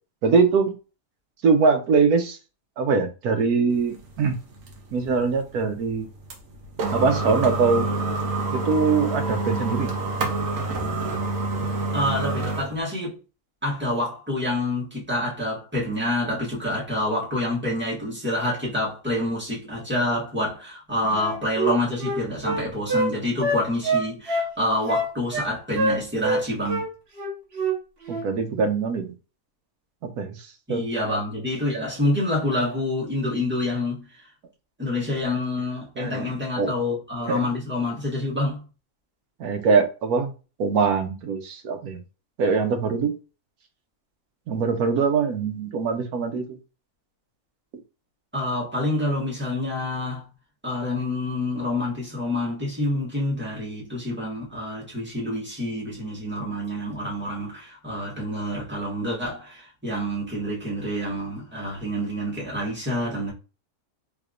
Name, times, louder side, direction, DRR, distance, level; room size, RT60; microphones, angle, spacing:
voice 1, 0.2-0.7 1.4-2.4 2.8-4.4 4.9-6.1 6.9-7.9 8.5-9.9 21.0-21.2 28.1-29.1 30.0-30.8 36.0-36.3 36.6-36.7 37.3-37.4 39.4-40.3 40.6-42.0 42.4-43.2 44.5-46.6, right 5 dB, 90° right, 1.3 m, -22 dB
sound 1, 3.7-12.8, right 2 dB, 65° right, 1.2 m, -28 dB
voice 2, 11.9-13.2 13.6-26.8 30.7-34.0 34.8-38.6 48.3-50.2 50.6-63.3, left 1 dB, 10° right, 1.5 m, -27 dB
Wind instrument woodwind instrument, 21.1-23.1 23.4-24.5 24.9-25.5 25.7-26.4 26.7-26.9 27.2-27.8 28.1-28.3, right 1 dB, 45° right, 1.4 m, -25 dB
3.6 x 3.4 x 2.5 m
omnidirectional pair, 1.6 m